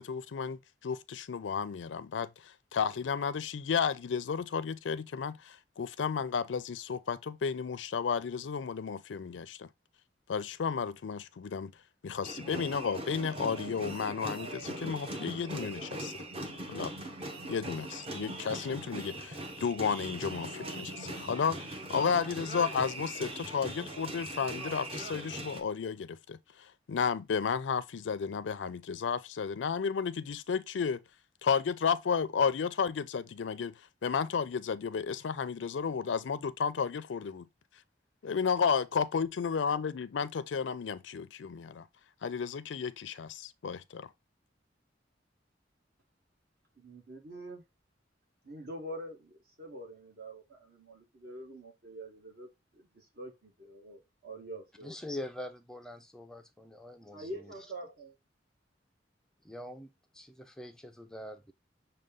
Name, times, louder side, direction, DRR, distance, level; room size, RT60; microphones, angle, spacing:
voice 1, 0.0-9.7 10.3-11.7 12.0-16.1 16.7-16.9 17.5-31.0 31.4-33.7 34.0-37.5 38.2-41.9 42.2-44.1, left 6 dB, 80° left, 0.4 m, -33 dB
sound 1, 12.2-25.6, right 1 dB, 30° right, 0.8 m, -41 dB
sound 2, 14.7-22.6, right 1 dB, 85° right, 0.8 m, -53 dB
voice 2, 46.8-47.6 48.4-55.0 57.1-58.2, right 1 dB, 55° right, 1.4 m, -45 dB
voice 3, 54.8-57.5 59.4-61.5, left 1 dB, 5° left, 0.4 m, -44 dB
6.5 x 2.2 x 3.6 m
head